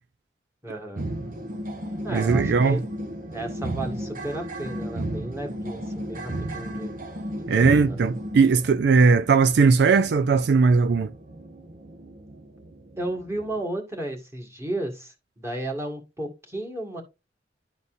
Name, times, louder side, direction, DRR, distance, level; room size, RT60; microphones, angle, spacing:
voice 1, 0.6-1.0 2.0-2.8 3.3-6.9 7.5-8.0 13.0-17.0, right 1 dB, 15° right, 1.9 m, -33 dB
sound 1, 1.0-13.6, right 1 dB, 50° right, 1.1 m, -34 dB
voice 2, 2.1-2.8 7.5-11.1, right 4 dB, 65° right, 0.4 m, -19 dB
12.0 x 4.1 x 2.6 m
head